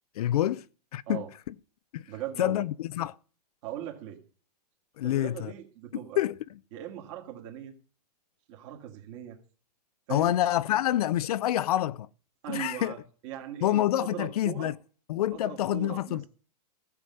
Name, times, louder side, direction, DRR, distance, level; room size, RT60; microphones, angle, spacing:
voice 1, 0.1-0.7 0.9-1.5 1.9-2.1 2.4-3.2 5.0-5.5 6.2-6.6 10.1-12.1 12.5-12.9 13.6-14.8 15.1-16.3, left 13 dB, 65° left, 0.6 m, -27 dB
voice 2, 2.1-2.6 3.6-4.2 5.0-6.2 6.7-7.7 8.5-9.4 10.1-10.3 12.4-14.7 15.3-16.3, right 11 dB, 45° right, 2.1 m, -39 dB
15.0 x 7.2 x 5.5 m
hypercardioid pair, 145°, 21 cm